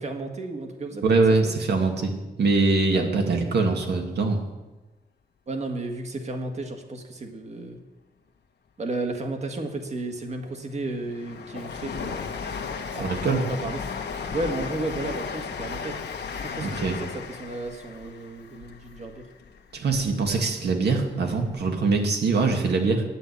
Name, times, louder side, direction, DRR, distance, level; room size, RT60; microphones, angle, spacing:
voice 1, 0.0-1.2 1.4-1.6 2.9-3.3 5.5-7.8 8.8-12.2 12.9-13.8 14.3-16.0 16.6-19.3, right 2 dB, 40° right, 5 dB, 1.6 m, -33 dB
voice 2, 1.0-2.1 2.4-4.4 13.0-13.4 16.6-17.0 19.7-23.0, right 3 dB, 75° right, 3 dB, 2.2 m, -23 dB
Train, 10.2-20.3 20.7-21.7 21.9-22.0, left 5 dB, 80° left, 1.2 m, -35 dB
10.5 x 9.1 x 8.2 m, 1.1 s
wide cardioid pair, 165°, 17 cm